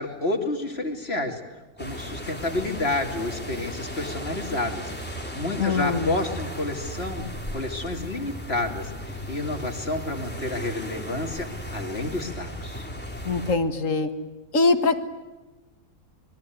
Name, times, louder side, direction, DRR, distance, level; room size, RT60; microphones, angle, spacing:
voice 1, 0.0-1.4 1.8-4.9 5.3-12.9, left 2 dB, 40° left, 4 dB, 3.1 m, -30 dB
sound 1, 1.8-13.6, equal, 5° left, 3.1 m, -36 dB
voice 2, 5.6-6.1 13.3-14.1 14.5-15.0, left 3 dB, 55° left, 9 dB, 2.2 m, -22 dB
27.0 x 22.5 x 9.4 m, 1.1 s
omnidirectional pair, 1.6 m